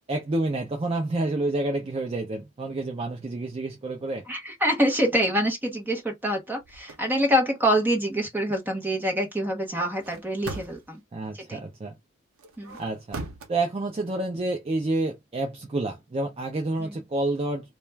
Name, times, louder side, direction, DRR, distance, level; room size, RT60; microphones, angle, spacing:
voice 1, 0.1-4.2 11.1-11.9 12.8-13.2 13.5-17.8, right 2 dB, 25° right, 0.4 m, -29 dB
voice 2, 4.3-11.0 11.3-11.6 12.6-12.8 16.8-17.0, equal, 10° right, 0.8 m, -26 dB
sound 1, 6.6-7.0 9.9-11.0 12.4-13.5, right 3 dB, 80° right, 0.7 m, -39 dB
2.3 x 2.2 x 3.1 m
head